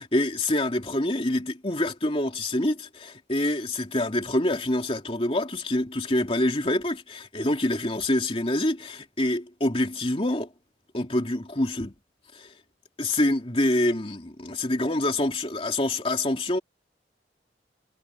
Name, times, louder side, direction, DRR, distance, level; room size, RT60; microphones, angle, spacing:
voice 1, 0.0-10.5 10.9-11.9 12.3-12.5 13.0-16.6, left 1 dB, 30° left, 2.7 m, -26 dB
head